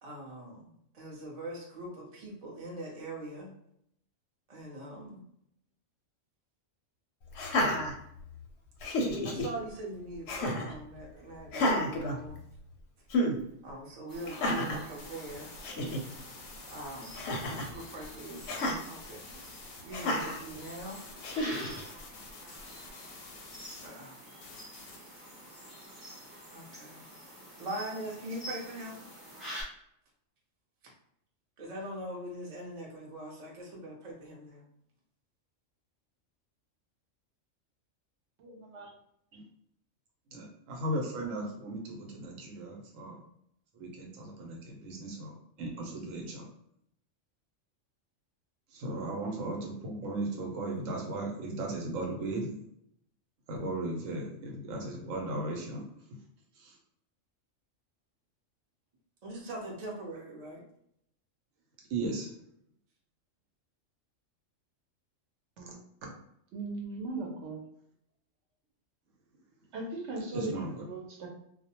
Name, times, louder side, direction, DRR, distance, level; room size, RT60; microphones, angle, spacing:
voice 1, 0.0-3.5 4.5-5.2 9.2-12.4 13.6-15.5 16.7-17.2 17.7-18.4 18.8-19.4 19.8-21.0 23.8-24.1 26.5-27.1 27.6-29.0 31.6-34.7 59.2-60.6, right 1 dB, 40° right, -3 dB, 0.6 m, -42 dB
Laughter, 7.3-8.4 8.8-9.5 10.3-10.8 11.5-12.7 13.1-13.4 14.3-14.9 15.4-15.5 15.6-16.0 17.1-17.7 18.5-18.8 19.9-20.4 21.2-21.8, left 1 dB, 65° left, 0.7 m, -31 dB
sound 1, 14.1-29.6, equal, ahead, 0.8 m, -47 dB
sound 2, 15.0-23.9 24.4-25.0, left 5 dB, 85° left, 1.0 m, -50 dB
voice 2, 38.4-38.9 65.6-65.7 66.5-67.6 69.7-71.3, right 2 dB, 65° right, 0 dB, 0.9 m, -38 dB
voice 3, 40.3-43.2 43.8-46.5 48.7-52.6 53.5-55.8 56.6-56.7 61.9-62.3 70.3-70.8, right 2 dB, 80° right, 0 dB, 1.0 m, -36 dB
2.3 x 2.1 x 2.8 m, 0.73 s
omnidirectional pair, 1.4 m